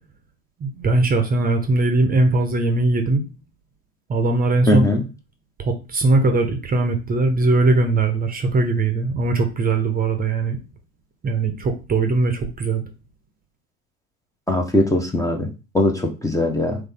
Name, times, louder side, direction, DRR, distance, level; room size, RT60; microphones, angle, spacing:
voice 1, 0.6-3.2 4.1-4.9 5.6-10.6 11.2-12.8, right 3 dB, 20° right, 5 dB, 0.9 m, -20 dB
voice 2, 4.7-5.0 14.5-15.5 15.7-16.8, left 1 dB, 10° left, 2 dB, 0.9 m, -20 dB
4.1 x 3.1 x 3.5 m, 0.29 s
figure-of-eight pair, 75°, 40 cm